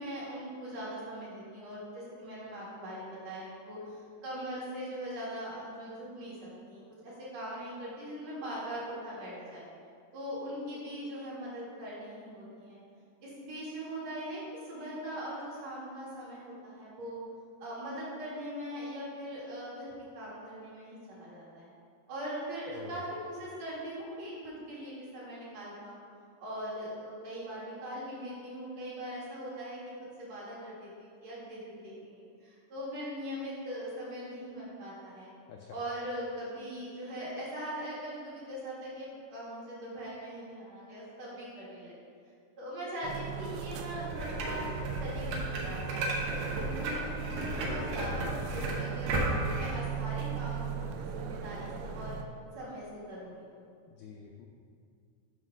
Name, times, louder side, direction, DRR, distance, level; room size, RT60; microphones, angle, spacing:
voice 1, 0.0-6.3 6.7-9.6 10.1-12.8 13.2-14.4 14.7-17.2 17.6-21.7 22.1-26.0 26.4-29.8 30.2-35.3 35.7-41.9 42.6-52.2 52.5-53.6, equal, 50° right, -8 dB, 2.8 m, -41 dB
sound 1, 43.0-52.2, right 7 dB, 90° right, 1.8 m, -38 dB
sound 2, 44.1-49.7, right 1 dB, 70° right, 1.7 m, -34 dB
voice 2, 53.9-54.5, left 6 dB, 85° left, 1 dB, 1.8 m, -48 dB
9.4 x 3.2 x 6.1 m, 2.3 s
omnidirectional pair, 4.2 m